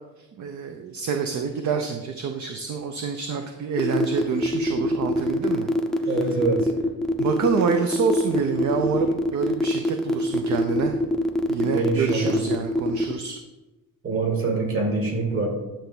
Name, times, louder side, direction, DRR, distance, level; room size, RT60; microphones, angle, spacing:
voice 1, 0.4-5.7 6.0-6.2 7.2-10.9 11.5-13.4, right 6 dB, 55° right, 5 dB, 0.7 m, -27 dB
sound 1, 3.8-13.1, left 1 dB, ahead, 0.6 m, -23 dB
voice 2, 6.1-6.7 11.7-12.4 14.0-15.5, right 3 dB, 40° right, 0 dB, 2.4 m, -25 dB
10.0 x 3.4 x 7.1 m, 1.1 s
cardioid pair, 135°, 36 cm